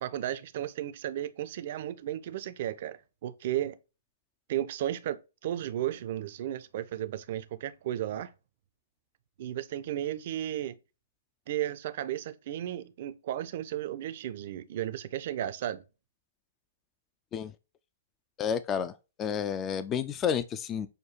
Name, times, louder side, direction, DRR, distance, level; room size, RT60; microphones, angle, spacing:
voice 1, 0.0-3.8 4.5-8.3 9.4-10.8 11.5-15.8, right 12 dB, 45° right, 0.4 m, -34 dB
voice 2, 18.4-20.9, left 8 dB, 20° left, 0.3 m, -31 dB
6.5 x 2.2 x 2.9 m
figure-of-eight pair, 120°, 0 cm